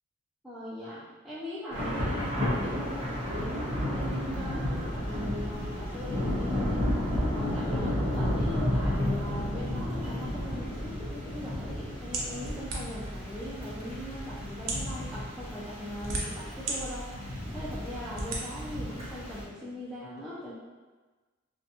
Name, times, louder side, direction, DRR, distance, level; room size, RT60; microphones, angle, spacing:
voice 1, 0.4-6.8 7.3-17.1 17.5-20.5, equal, ahead, -11 dB, 0.4 m, -40 dB
Thunder / Rain, 1.7-19.4, left 1 dB, 30° right, 0.7 m, -33 dB
sound 1, 4.2-10.9, equal, 45° left, 0.7 m, -39 dB
sound 2, 12.1-13.1 13.9-14.0 14.6-14.9 15.7-16.8 17.3-17.4 18.1-18.4, right 2 dB, 85° right, 0.6 m, -33 dB
2.6 x 2.2 x 2.7 m, 1.3 s
head